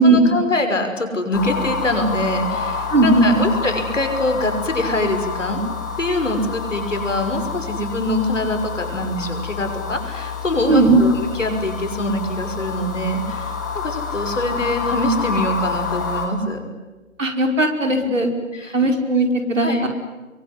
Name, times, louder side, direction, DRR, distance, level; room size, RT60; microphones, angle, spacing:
voice 1, 0.0-5.6 6.0-13.6 13.8-16.6 18.0-18.1 18.5-18.8 19.6-19.9, left 1 dB, 65° left, 6 dB, 5.9 m, -24 dB
sound 1, 1.3-16.3, left 5 dB, 15° left, 1.8 m, -28 dB
voice 2, 2.9-3.5 10.7-11.0 17.2-18.3 18.7-19.9, right 2 dB, 70° right, 4 dB, 5.1 m, -16 dB
25.5 x 23.5 x 9.8 m, 1.2 s
figure-of-eight pair, 165°, 40 cm